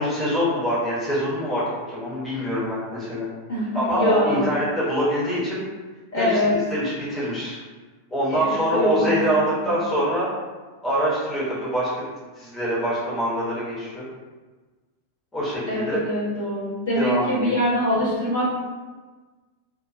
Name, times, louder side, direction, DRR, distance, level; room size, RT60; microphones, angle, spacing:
voice 1, 0.0-3.3 3.7-5.6 6.2-7.6 8.1-10.3 10.8-12.1 12.4-14.0 15.3-16.0 16.9-17.4, equal, 15° left, -9 dB, 0.9 m, -24 dB
voice 2, 3.5-4.5 6.1-6.5 8.3-9.8 15.7-18.5, left 1 dB, 60° left, -8 dB, 1.0 m, -24 dB
2.2 x 2.2 x 2.5 m, 1.3 s
figure-of-eight pair, 90°, 0 cm